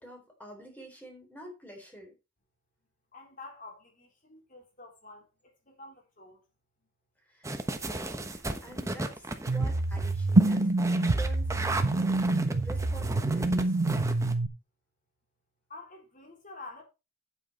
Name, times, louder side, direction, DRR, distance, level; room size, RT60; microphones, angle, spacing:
voice 1, 0.0-2.1 7.2-13.8, right 1 dB, 10° left, 3.9 m, -47 dB
voice 2, 3.1-6.4 15.7-16.8, left 3 dB, 40° left, 4.2 m, -48 dB
sound 1, 7.4-14.3, right 2 dB, 15° right, 1.1 m, -35 dB
sound 2, 9.5-14.5, right 2 dB, 60° right, 0.9 m, -26 dB
9.2 x 8.4 x 4.3 m
head